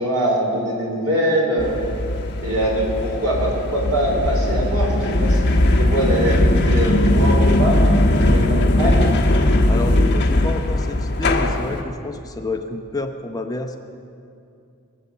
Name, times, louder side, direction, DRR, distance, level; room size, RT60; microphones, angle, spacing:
voice 1, 0.0-1.8 2.4-7.8 8.2-9.1, right 1 dB, 90° right, -2 dB, 4.3 m, -23 dB
sound 1, 1.6-11.8, left 1 dB, 50° left, 1.3 m, -18 dB
voice 2, 9.7-13.8, left 2 dB, 15° left, 4 dB, 0.8 m, -29 dB
23.0 x 8.1 x 7.2 m, 2.5 s
head